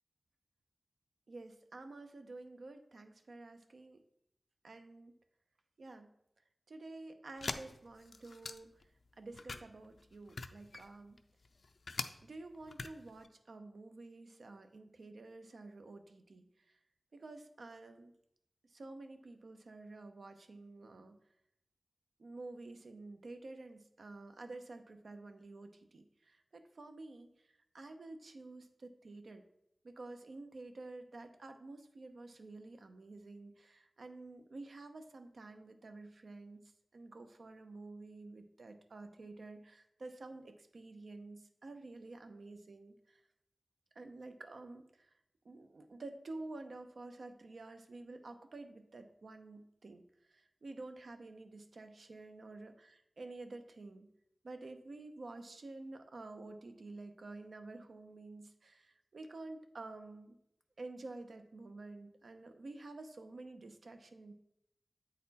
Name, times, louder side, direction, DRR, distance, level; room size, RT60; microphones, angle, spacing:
voice 1, 1.3-4.0 4.6-5.1 5.8-6.1 6.7-8.7 9.2-11.2 12.2-16.8 17.1-18.1 18.6-21.2 22.2-29.4 29.8-43.2 44.0-45.1 45.4-50.0 50.3-54.1 54.4-60.4 60.8-64.3, right 2 dB, 75° right, 7 dB, 0.7 m, -50 dB
sound 1, 7.4-8.8 9.3-12.1 12.5-13.3, left 3 dB, 75° left, 0.4 m, -43 dB
8.6 x 4.1 x 4.1 m, 0.79 s
wide cardioid pair, 85°, 0 cm